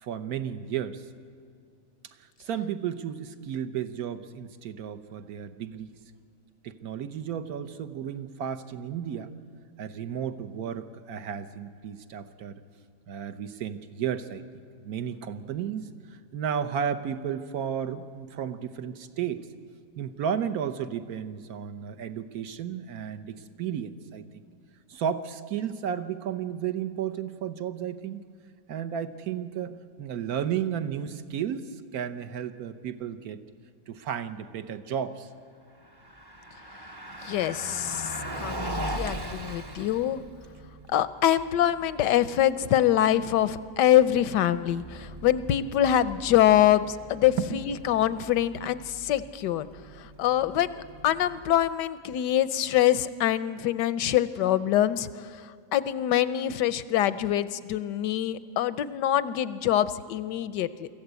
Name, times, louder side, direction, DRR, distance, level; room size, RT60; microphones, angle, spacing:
voice 1, 0.0-1.1 2.2-5.9 6.6-9.3 9.8-12.6 13.1-14.5 14.8-19.5 20.0-24.2 24.9-28.2 28.7-33.4 33.9-35.3 39.1-39.2 47.5-47.6, right 8 dB, 65° right, 11 dB, 1.3 m, -33 dB
Car passing by, 35.7-51.9, right 1 dB, 20° right, 0.7 m, -41 dB
voice 2, 37.2-38.1 38.4-40.2 40.9-49.7 50.2-55.1 55.7-60.9, left 11 dB, 80° left, 15 dB, 1.3 m, -24 dB
24.0 x 14.5 x 8.2 m, 2.3 s
omnidirectional pair, 1.8 m